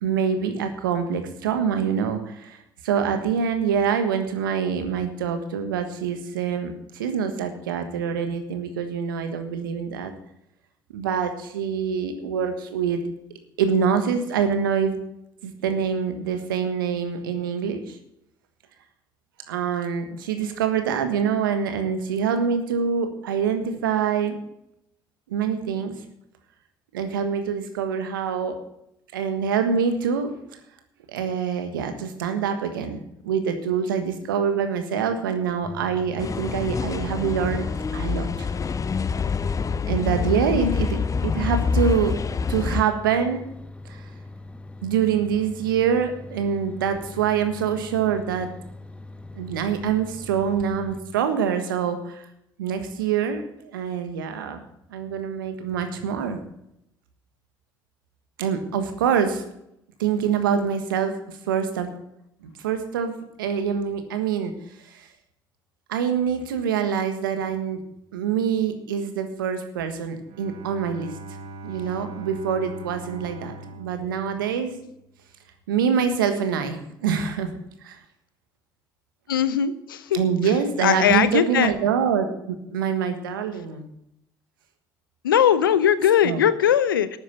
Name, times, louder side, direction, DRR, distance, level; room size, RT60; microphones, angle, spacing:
voice 1, 0.0-2.6 2.8-10.1 10.9-13.0 13.6-15.0 15.4-18.0 19.5-24.4 25.3-26.0 26.9-28.6 29.1-30.4 31.1-37.7 37.9-38.5 39.9-42.2 42.5-43.4 43.8-44.0 44.8-48.5 49.3-52.2 52.6-54.6 54.9-56.4 58.4-59.4 60.0-61.9 62.4-64.5 64.8-65.1 65.9-67.8 68.1-71.1 71.6-74.8 75.7-77.5 77.8-78.0 80.1-83.9 86.2-86.4, right 7 dB, 80° right, 7 dB, 1.4 m, -25 dB
sound 1, 35.6-51.0, left 2 dB, 10° left, 1.0 m, -42 dB
sound 2, 36.2-42.8, left 5 dB, 30° left, 0.6 m, -26 dB
Bowed string instrument, 70.2-75.2, right 2 dB, 65° right, 1.8 m, -41 dB
voice 2, 79.3-80.5 80.8-81.7 85.2-87.2, left 9 dB, 85° left, 15 dB, 0.7 m, -20 dB
12.5 x 9.6 x 6.0 m, 0.80 s
hypercardioid pair, 55°, 11 cm